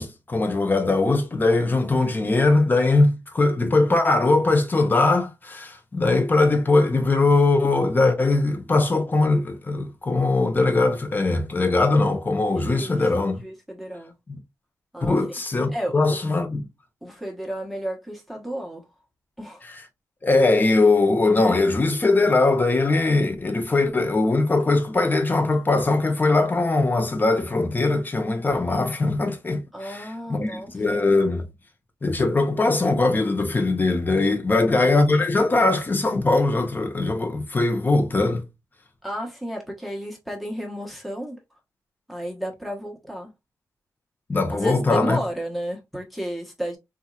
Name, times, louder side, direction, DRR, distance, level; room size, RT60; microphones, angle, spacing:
voice 1, 0.0-13.4 14.3-14.4 15.0-16.6 20.2-31.4 32.0-38.4 44.3-45.2, left 3 dB, 30° left, 1.0 m, -21 dB
voice 2, 12.5-13.0 13.4-14.1 14.9-15.2 15.7-16.2 17.0-18.9 19.4-19.6 29.7-31.0 34.5-34.9 39.0-41.4 42.1-43.3 44.5-46.8, equal, ahead, 1.2 m, -32 dB
4.3 x 2.7 x 2.4 m
wide cardioid pair, 105°, 6 cm